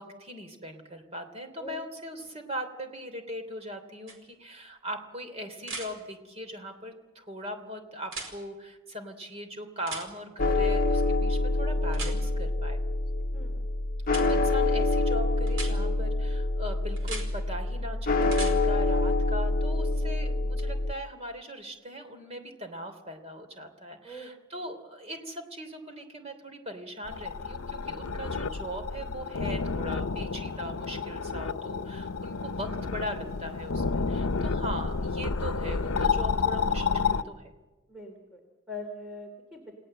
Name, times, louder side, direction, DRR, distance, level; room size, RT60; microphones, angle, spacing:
voice 1, 0.0-12.8 14.1-37.5, equal, 30° right, 6 dB, 3.0 m, -40 dB
sound 1, 4.1-4.2 5.6-5.9 8.0-8.3 9.9-10.1 11.9-12.1 14.1-14.2 15.5-15.7 17.0-17.3 18.2-18.5 20.6-20.7, right 3 dB, 65° right, 4.8 m, -37 dB
sound 2, 10.4-20.9, left 2 dB, 40° left, 1.0 m, -26 dB
voice 2, 13.3-13.6 24.0-24.6 37.9-38.4 38.7-39.7, left 1 dB, 5° right, 2 dB, 2.7 m, -42 dB
sound 3, 27.1-37.2, left 5 dB, 80° left, 0.8 m, -30 dB
29.0 x 18.0 x 7.7 m, 1.2 s
head